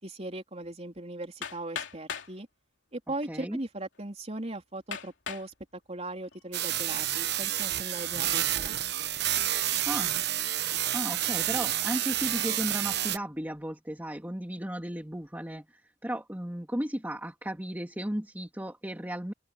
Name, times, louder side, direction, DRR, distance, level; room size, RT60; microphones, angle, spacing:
voice 1, 0.0-2.5 2.9-5.5 5.9-8.8, right 2 dB, 35° right, 3.9 m, -38 dB
Hammer, 1.4-2.3 3.3-3.4 3.9-4.0 4.9-5.5 6.1-6.5, left 7 dB, 80° left, 3.0 m, -38 dB
voice 2, 3.3-3.6 9.9-10.2 10.9-19.3, equal, 10° right, 2.1 m, -35 dB
sound 1, 6.5-13.2, right 12 dB, 60° right, 1.1 m, -29 dB
head